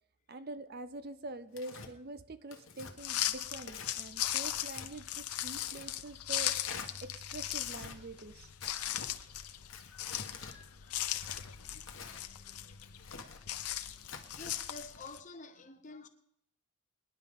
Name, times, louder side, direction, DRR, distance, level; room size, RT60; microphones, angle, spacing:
voice 1, 0.3-6.6 7.0-8.5, right 2 dB, 45° right, 0.7 m, -45 dB
Tearing, 1.5-1.9 2.5-2.9 3.6-3.9 4.3-4.9 5.4-5.9 6.5-6.9 7.6-8.0 8.6-9.1 9.7-10.6 11.3-12.3 12.8-13.4 14.0-14.5, left 5 dB, 60° left, 1.4 m, -47 dB
sound 1, 3.0-15.2, left 12 dB, 90° left, 0.8 m, -38 dB
voice 2, 8.9-9.8 10.7-11.0 11.3-11.5 12.0-13.8 14.0-16.1, left 3 dB, 35° left, 1.0 m, -53 dB
24.5 x 10.5 x 3.7 m
head